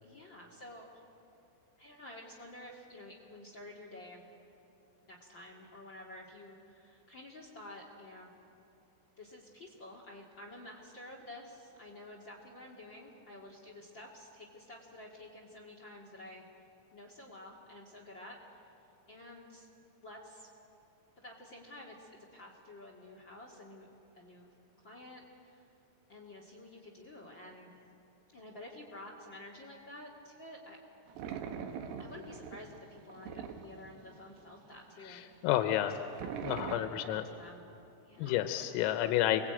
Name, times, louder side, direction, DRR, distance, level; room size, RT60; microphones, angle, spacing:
voice 1, 0.0-1.0 1.8-4.2 5.1-8.4 9.2-16.5 16.9-18.4 19.1-19.7 20.0-20.5 21.2-23.9 24.1-24.5 24.8-25.7 26.1-27.8 28.3-30.8 31.5-35.3 35.5-35.9 36.4-37.7 38.0-38.5, left 1 dB, 40° left, 1 dB, 1.6 m, -51 dB
sound 1, 31.1-34.4 34.7-34.8 35.0-35.1 35.5-36.8, right 7 dB, 85° right, 4.2 m, -42 dB
voice 2, 35.1-36.0 36.4-37.2 38.2-39.5, left 13 dB, 85° left, 7 dB, 3.6 m, -30 dB
29.5 x 22.0 x 8.9 m, 2.8 s
omnidirectional pair, 5.9 m